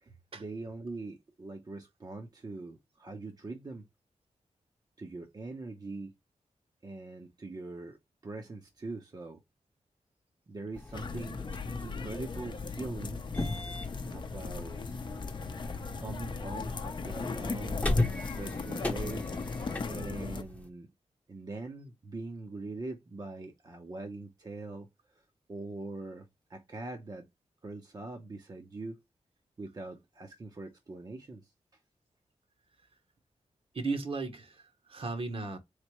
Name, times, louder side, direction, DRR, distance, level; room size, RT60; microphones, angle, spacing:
voice 1, 0.0-3.8 5.0-6.1 6.8-9.4 10.5-11.4 11.8-13.2 14.1-14.9 16.0-19.3 19.9-20.9 21.3-25.2 25.5-27.3 27.6-29.0 29.6-31.5, right 3 dB, 35° right, 0.8 m, -42 dB
sound 1, 10.7-20.7, left 2 dB, 10° left, 0.8 m, -37 dB
sound 2, 10.9-20.4, left 4 dB, 40° left, 0.6 m, -38 dB
voice 2, 33.7-35.6, right 3 dB, 50° right, 1.0 m, -35 dB
4.2 x 3.3 x 3.0 m
wide cardioid pair, 145°, 12 cm